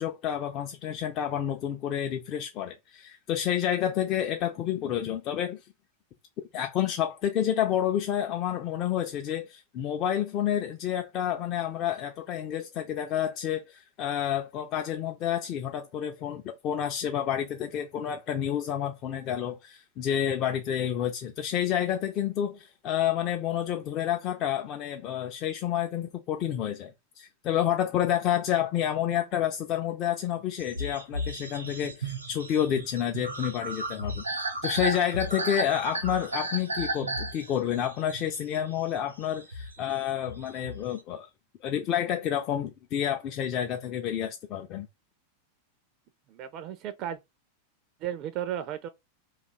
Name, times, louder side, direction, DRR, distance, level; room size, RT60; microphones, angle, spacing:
voice 1, 0.0-5.6 6.5-26.9 27.2-34.2 34.6-41.3 41.6-44.9, left 10 dB, 35° left, 0.4 m, -29 dB
sound 1, 30.6-41.0, right 2 dB, 80° right, 0.8 m, -34 dB
voice 2, 46.3-47.2 48.0-48.9, right 10 dB, 40° right, 0.4 m, -34 dB
2.8 x 2.4 x 4.2 m
figure-of-eight pair, 90°, 0 cm